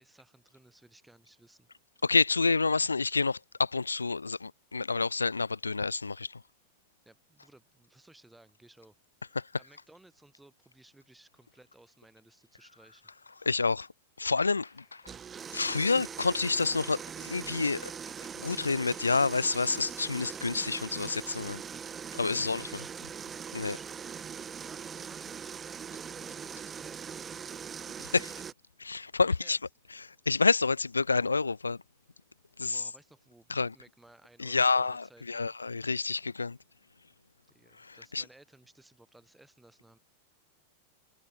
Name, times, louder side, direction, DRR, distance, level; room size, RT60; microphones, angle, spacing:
voice 1, 0.0-1.7 7.0-9.0 9.5-13.0 21.7-21.9 22.3-23.3 23.6-27.5 29.2-29.6 32.6-35.5 37.5-40.0, right 2 dB, 5° right, 4.5 m, -58 dB
voice 2, 2.0-6.4 9.4-9.5 13.5-13.9 14.2-15.0 15.5-17.9 18.4-21.6 22.2-22.6 23.5-23.8 28.1-28.3 28.8-29.6 30.0-31.8 32.6-32.8 33.5-33.7 34.4-36.6 37.8-38.2, left 4 dB, 80° left, 0.4 m, -28 dB
sound 1, 14.4-26.3, left 5 dB, 15° left, 6.2 m, -69 dB
sound 2, 15.0-28.5, right 7 dB, 20° right, 1.0 m, -41 dB
figure-of-eight pair, 90°, 0 cm